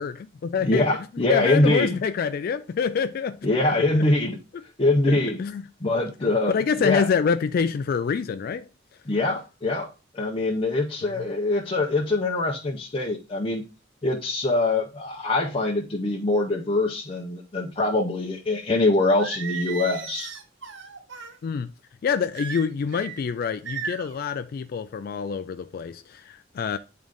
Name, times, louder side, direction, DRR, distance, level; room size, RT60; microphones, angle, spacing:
voice 1, 0.0-0.9 1.3-3.4 3.7-4.1 5.1-5.6 6.5-8.7 21.4-21.7 22.0-26.8, left 6 dB, 50° left, 0.3 m, -26 dB
voice 2, 0.6-2.0 3.4-4.4 4.8-5.4 5.8-7.1 9.1-9.9 10.1-13.6 14.0-20.3, left 2 dB, 30° left, 0.7 m, -23 dB
Singing, 19.2-21.4 22.3-23.2 23.6-24.2, right 6 dB, 75° right, 1.0 m, -35 dB
8.9 x 3.8 x 3.5 m
head